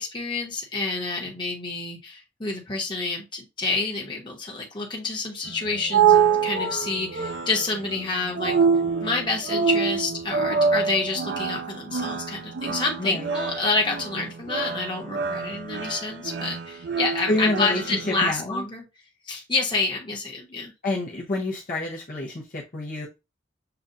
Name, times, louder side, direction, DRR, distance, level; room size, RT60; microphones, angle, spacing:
voice 1, 0.0-8.6 9.0-18.8 19.3-20.7, left 3 dB, 25° left, 1.1 m, -28 dB
sound 1, 5.5-18.3, right 6 dB, 60° right, 0.5 m, -26 dB
voice 2, 13.0-13.3 17.2-18.6 20.8-23.1, left 2 dB, 45° left, 0.8 m, -28 dB
6.8 x 2.4 x 2.6 m
head